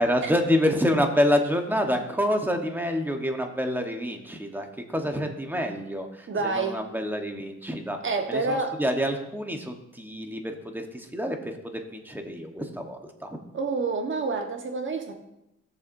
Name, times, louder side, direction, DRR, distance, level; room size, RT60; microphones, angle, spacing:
voice 1, 0.0-8.0 8.3-13.4, equal, 5° right, 4 dB, 1.2 m, -27 dB
voice 2, 6.3-6.8 8.0-8.8 13.5-15.1, right 4 dB, 40° right, 4 dB, 1.3 m, -28 dB
15.0 x 7.0 x 2.7 m, 0.87 s
cardioid pair, 90°, 30 cm